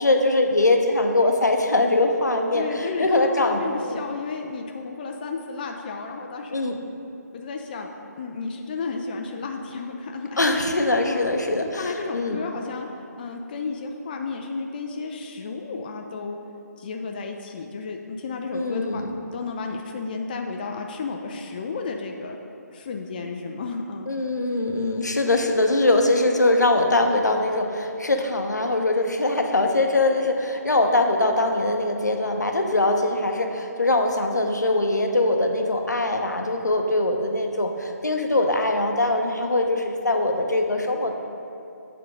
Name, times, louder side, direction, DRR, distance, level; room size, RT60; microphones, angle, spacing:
voice 1, 0.0-2.6 3.0-4.0 6.5-6.8 10.4-12.4 18.5-19.0 24.1-41.2, left 2 dB, 80° left, 3 dB, 0.7 m, -22 dB
voice 2, 2.5-6.6 7.3-7.9 8.1-10.4 11.0-11.3 11.6-12.9 13.2-16.4 16.8-19.0 19.3-22.4 22.7-24.1, left 4 dB, 30° left, 2 dB, 0.4 m, -32 dB
7.9 x 3.7 x 5.1 m, 2.7 s
figure-of-eight pair, 145°, 9 cm